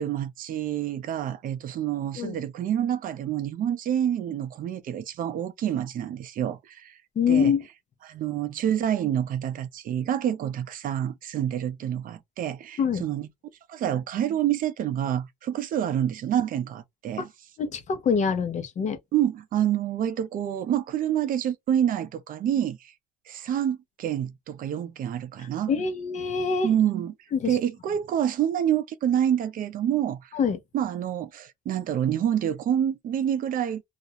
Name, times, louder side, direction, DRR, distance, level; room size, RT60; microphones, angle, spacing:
voice 1, 0.0-7.0 7.3-7.5 8.0-13.3 13.7-17.3 19.1-22.9 23.3-25.7 26.6-27.1 27.5-30.3 30.7-33.8, right 10 dB, 55° right, 0.6 m, -27 dB
voice 2, 7.2-7.6 12.8-13.1 17.2-17.3 17.6-19.0 25.4-26.7 27.3-27.6 30.3-30.6, left 6 dB, 45° left, 0.7 m, -25 dB
2.5 x 2.1 x 2.7 m
cardioid pair, 110°, 17 cm